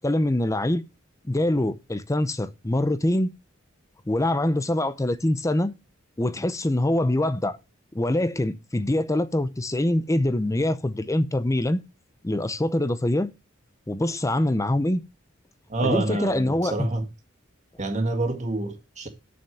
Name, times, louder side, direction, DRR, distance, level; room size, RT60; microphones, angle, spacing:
voice 1, 0.0-0.8 1.2-3.3 4.1-5.7 6.2-7.6 7.9-11.8 12.2-13.3 13.9-15.0 15.8-16.9, left 1 dB, 15° left, 0.7 m, -24 dB
voice 2, 15.7-17.1 17.8-19.1, right 2 dB, 35° right, 1.9 m, -27 dB
6.9 x 6.4 x 7.0 m
head